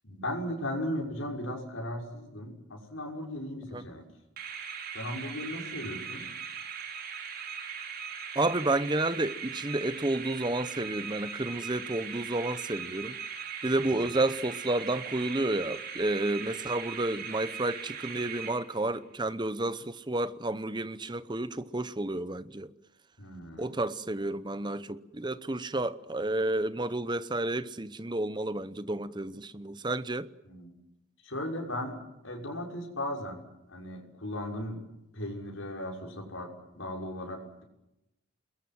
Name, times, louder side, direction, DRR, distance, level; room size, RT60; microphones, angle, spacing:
voice 1, 0.0-4.0 4.9-6.2 6.9-7.0 13.8-14.1 23.2-23.7 30.5-30.7 31.2-33.4 33.7-34.8 35.1-37.6, left 1 dB, 80° left, 6.2 m, -37 dB
sound 1, 4.4-19.0, right 6 dB, 45° right, 4.1 m, -40 dB
voice 2, 8.3-13.2 13.6-22.7 23.6-30.3, right 2 dB, 20° right, 0.9 m, -31 dB
28.0 x 21.5 x 7.7 m
head